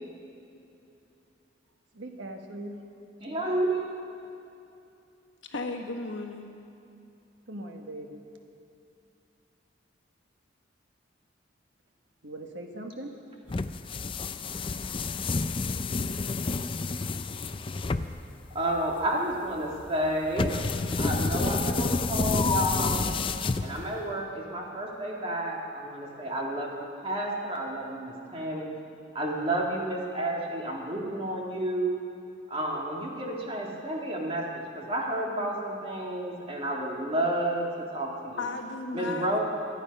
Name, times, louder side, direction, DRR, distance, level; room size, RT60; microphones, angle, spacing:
voice 1, 1.9-2.8 7.5-8.2 12.2-13.2, right 1 dB, 75° right, 3 dB, 1.4 m, -40 dB
voice 2, 3.2-3.8 18.5-20.6 21.0-23.1 23.6-26.7 27.0-28.7 29.1-31.9 32.5-37.7 37.9-38.4 38.9-39.4, right 1 dB, 30° right, -2 dB, 2.3 m, -31 dB
voice 3, 5.4-6.5 38.4-39.4, left 3 dB, 75° left, 3 dB, 1.5 m, -35 dB
sound 1, 13.5-24.1, left 3 dB, 30° left, 0.4 m, -29 dB
25.0 x 9.1 x 5.4 m, 2.7 s
head